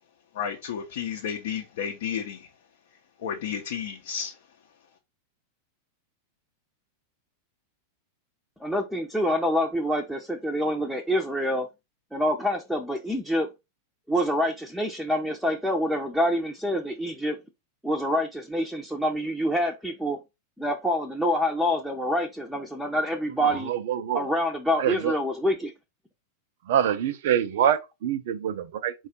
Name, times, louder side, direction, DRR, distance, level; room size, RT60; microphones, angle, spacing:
voice 1, 0.3-2.5 3.2-4.4, left 8 dB, 55° left, 0.7 m, -32 dB
voice 2, 8.6-11.7 12.1-13.5 14.1-17.4 17.8-20.2 20.6-23.7 24.1-25.7, equal, ahead, 0.6 m, -26 dB
voice 3, 23.7-24.3 24.8-25.1 26.7-28.9, right 9 dB, 55° right, 0.5 m, -25 dB
4.8 x 2.4 x 4.2 m
figure-of-eight pair, 90°, 0 cm